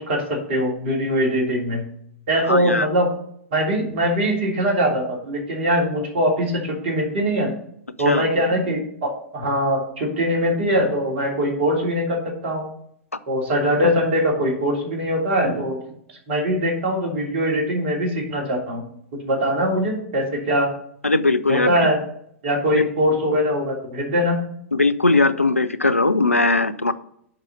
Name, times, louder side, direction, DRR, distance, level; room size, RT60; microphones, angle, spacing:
voice 1, 0.0-1.8 2.3-3.2 3.5-7.5 8.0-12.6 13.3-15.8 16.3-18.8 19.2-20.7 21.5-22.0 22.4-24.4, equal, 50° right, -1 dB, 3.2 m, -22 dB
voice 2, 2.5-2.9 8.0-8.2 21.0-21.7 22.7-22.8 24.7-26.9, left 3 dB, 90° left, 13 dB, 0.5 m, -19 dB
7.3 x 5.5 x 6.4 m, 0.69 s
figure-of-eight pair, 100°, 7 cm